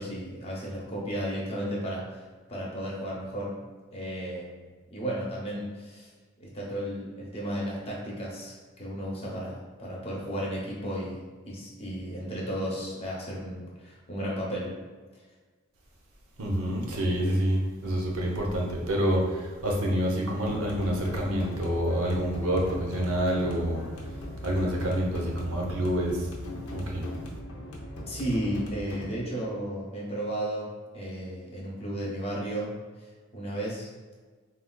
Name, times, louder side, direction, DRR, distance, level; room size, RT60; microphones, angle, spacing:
voice 1, 0.0-2.2 2.5-3.6 3.9-6.1 6.4-14.8 28.1-32.7 33.3-33.9, equal, 30° left, -4 dB, 0.6 m, -34 dB
voice 2, 16.4-23.8 24.4-26.3 26.7-27.1, equal, 85° right, -1 dB, 0.6 m, -27 dB
sound 1, 20.4-29.1, left 1 dB, 85° left, 0.6 m, -39 dB
3.6 x 2.2 x 2.2 m, 1.4 s
head